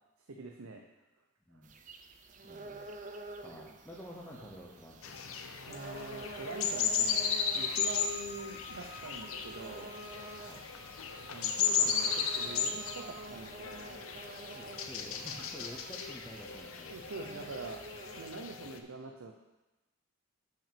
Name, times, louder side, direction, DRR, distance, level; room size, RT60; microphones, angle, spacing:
voice 1, 0.3-0.8 4.4-4.5 5.7-9.9 11.3-14.0 16.9-17.8 18.2-19.3, right 2 dB, 80° right, 2 dB, 0.6 m, -44 dB
sound 1, 1.6-18.3, right 2 dB, 35° right, 0.5 m, -49 dB
voice 2, 2.4-5.2 10.4-10.6 14.5-16.9 17.2-17.4, equal, 10° left, -5 dB, 0.8 m, -50 dB
sound 2, 5.0-18.8, left 6 dB, 75° left, 0.6 m, -35 dB
Bowed string instrument, 7.5-13.1, left 2 dB, 30° left, 1.3 m, -52 dB
5.8 x 5.7 x 6.8 m, 1.1 s
head